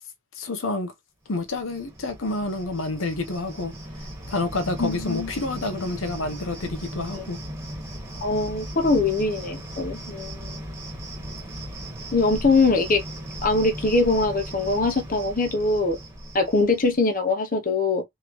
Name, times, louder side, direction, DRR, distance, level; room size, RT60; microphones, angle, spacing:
voice 1, 0.4-0.9 1.3-7.4, left 2 dB, 80° left, 0.9 m, -29 dB
Cricket, 1.4-17.1, right 1 dB, 15° right, 1.4 m, -37 dB
voice 2, 4.8-5.3 7.1-7.2 8.2-10.6 12.1-13.0 13.4-16.0 16.3-18.0, left 3 dB, 45° left, 0.9 m, -22 dB
3.7 x 3.3 x 3.1 m
head